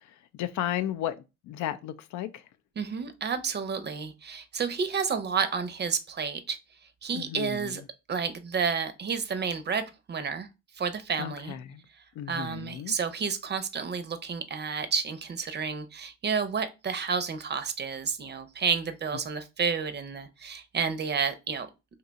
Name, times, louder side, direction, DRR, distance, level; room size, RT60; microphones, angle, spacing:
voice 1, 0.0-2.4 7.1-7.7 11.2-11.8 12.2-13.0, left 11 dB, 65° left, 0.4 m, -34 dB
voice 2, 2.8-6.6 7.0-7.8 8.1-10.5 10.8-11.6 12.3-21.7, right 6 dB, 35° right, 0.6 m, -30 dB
2.8 x 2.3 x 3.9 m
supercardioid pair, 75°, 32 cm